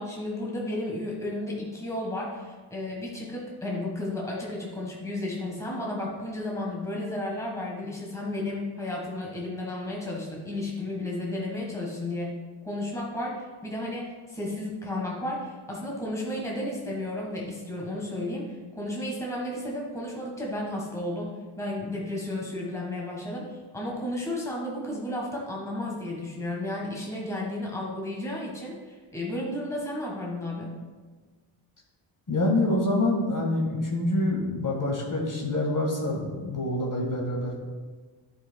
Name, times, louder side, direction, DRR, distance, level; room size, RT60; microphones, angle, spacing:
voice 1, 0.0-12.4 12.6-30.7, left 1 dB, 5° left, -2 dB, 1.4 m, -33 dB
voice 2, 32.3-37.6, left 1 dB, 40° left, -2 dB, 1.7 m, -26 dB
11.0 x 5.0 x 2.3 m, 1.4 s
cardioid pair, 75°, 49 cm